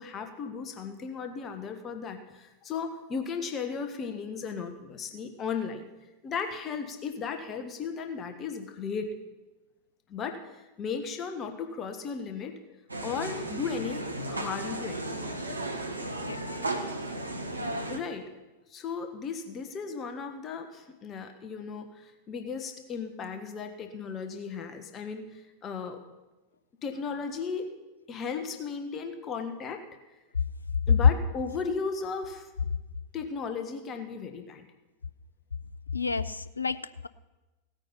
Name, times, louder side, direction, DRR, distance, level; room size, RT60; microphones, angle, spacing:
voice 1, 0.0-5.9 6.2-9.1 10.1-12.6 13.0-15.1 17.9-18.3 18.7-26.0 26.8-27.7 28.1-29.8 30.9-32.5 33.1-34.7, left 5 dB, 30° left, 6 dB, 1.3 m, -35 dB
sound 1, 12.9-18.0, right 2 dB, 80° right, 1.2 m, -34 dB
voice 2, 35.9-37.1, left 4 dB, 80° left, 16 dB, 0.4 m, -32 dB
17.0 x 9.0 x 5.6 m, 1.1 s
figure-of-eight pair, 90°, 0 cm